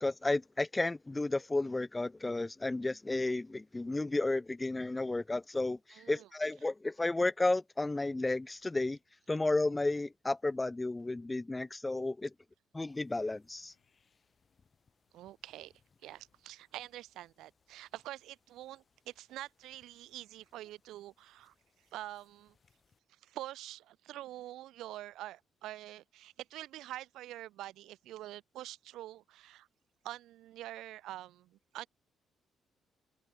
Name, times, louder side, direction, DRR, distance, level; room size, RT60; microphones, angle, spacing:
voice 1, 0.0-9.0 9.3-12.3 12.7-13.7, left 2 dB, 15° left, 0.3 m, -32 dB
voice 2, 5.9-6.3 15.1-15.7 16.0-21.5 21.9-22.5 23.2-29.7 30.0-31.9, right 14 dB, 85° right, 0.9 m, -46 dB
Sliding door, 8.1-17.1 17.4-18.2, left 10 dB, 70° left, 6.5 m, -79 dB
sound 1, 12.9-23.0, left 5 dB, 40° left, 5.5 m, -75 dB
open air
cardioid pair, 90°, 0 cm